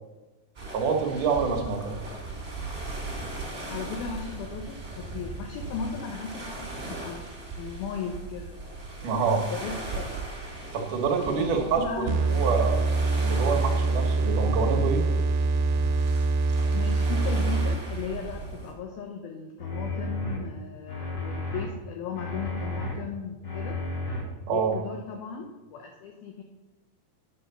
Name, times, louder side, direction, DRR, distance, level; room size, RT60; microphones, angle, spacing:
sound 1, 0.5-18.7, right 2 dB, 20° right, 1.9 m, -39 dB
voice 1, 0.7-2.0 9.0-9.4 10.7-12.8 13.2-15.0 24.5-24.7, right 5 dB, 65° right, 1 dB, 2.1 m, -26 dB
voice 2, 3.7-7.2 7.6-8.7 9.0-9.2 9.5-10.1 11.4-12.5 16.7-23.8 24.5-26.4, left 6 dB, 75° left, 2 dB, 2.4 m, -37 dB
sound 2, 12.1-18.0, right 3 dB, 85° right, 3.0 m, -24 dB
sound 3, 19.6-20.4 20.9-21.6 22.1-22.9 23.4-24.2 24.7-24.8, left 2 dB, 45° left, 1.3 m, -32 dB
9.2 x 7.3 x 6.7 m, 1.1 s
omnidirectional pair, 5.2 m